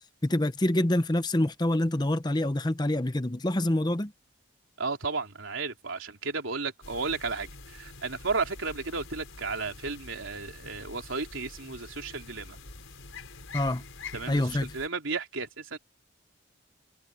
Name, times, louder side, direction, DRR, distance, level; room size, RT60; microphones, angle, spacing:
voice 1, 0.2-4.1 13.5-13.8 14.3-14.8, left 1 dB, 20° left, 0.8 m, -26 dB
voice 2, 4.8-12.6 14.1-15.8, right 4 dB, 85° right, 3.3 m, -33 dB
sound 1, 6.8-14.9, left 4 dB, 85° left, 5.4 m, -46 dB
head